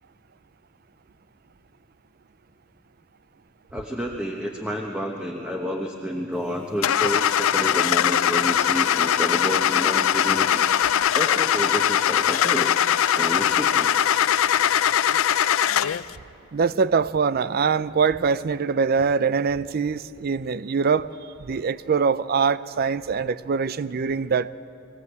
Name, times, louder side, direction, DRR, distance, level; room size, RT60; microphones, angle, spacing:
voice 1, 3.7-10.6 11.1-12.7 13.1-14.1, equal, 5° right, 1.1 m, -30 dB
Car / Engine starting, 6.8-16.1, left 9 dB, 90° left, 0.4 m, -21 dB
voice 2, 16.5-21.1 21.4-24.5, right 5 dB, 50° right, 0.5 m, -23 dB
22.0 x 16.5 x 8.1 m
head